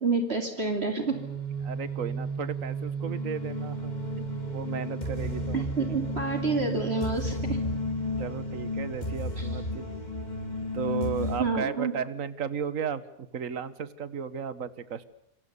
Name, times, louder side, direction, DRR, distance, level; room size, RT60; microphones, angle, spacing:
voice 1, 0.0-1.2 5.8-7.6 9.4-9.5 11.4-11.9, right 4 dB, 45° right, 5 dB, 3.0 m, -28 dB
sound 1, 1.1-11.4, equal, 30° left, 3.3 m, -32 dB
voice 2, 1.6-3.9 4.5-5.7 8.2-9.9 10.7-15.1, right 7 dB, 70° right, 14 dB, 1.7 m, -34 dB
27.5 x 24.0 x 6.9 m, 0.75 s
omnidirectional pair, 1.5 m